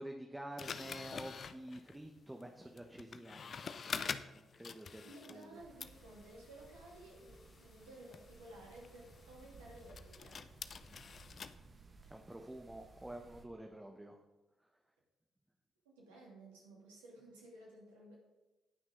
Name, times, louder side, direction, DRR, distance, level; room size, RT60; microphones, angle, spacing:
voice 1, 0.0-5.6 12.1-14.2, right 1 dB, 15° right, 3 dB, 1.1 m, -49 dB
sound 1, 0.6-5.5 5.8-11.5, left 6 dB, 50° left, 0.6 m, -47 dB
voice 2, 5.0-10.4 15.8-18.2, right 1 dB, 80° right, -3 dB, 2.7 m, -55 dB
sound 2, 5.5-13.5, right 3 dB, 40° right, 1.8 m, -60 dB
17.5 x 6.1 x 3.9 m, 1.1 s
hypercardioid pair, 40°, 0 cm